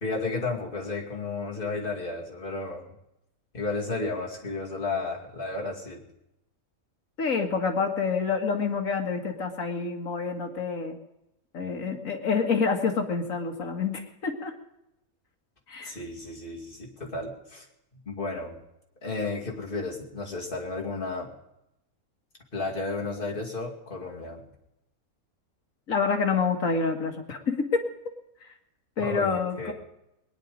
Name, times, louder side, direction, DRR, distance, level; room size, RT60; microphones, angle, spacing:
voice 1, 0.0-2.9 3.5-6.0 15.8-17.7 17.9-18.6 19.0-21.3 22.5-24.5 29.0-29.7, left 3 dB, 35° left, -2 dB, 2.7 m, -33 dB
voice 2, 7.2-11.0 11.5-14.5 15.7-16.0 25.9-27.8 28.4-28.5 29.0-29.7, left 5 dB, 65° left, 4 dB, 2.1 m, -27 dB
21.0 x 10.0 x 5.1 m, 0.86 s
omnidirectional pair, 1.5 m